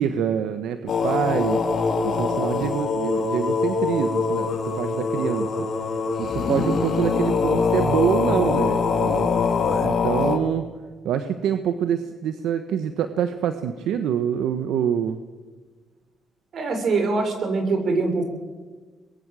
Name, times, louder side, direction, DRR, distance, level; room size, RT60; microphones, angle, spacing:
voice 1, 0.0-1.6 2.0-5.7 6.2-9.3 9.8-10.7 11.0-15.2, right 9 dB, 80° right, 9 dB, 1.3 m, -25 dB
sound 1, 0.9-10.4, left 4 dB, 55° left, 3.8 m, -23 dB
voice 2, 16.5-18.2, right 3 dB, 55° right, 5 dB, 6.3 m, -23 dB
24.0 x 21.5 x 7.7 m, 1.4 s
cardioid pair, 90°, 0 cm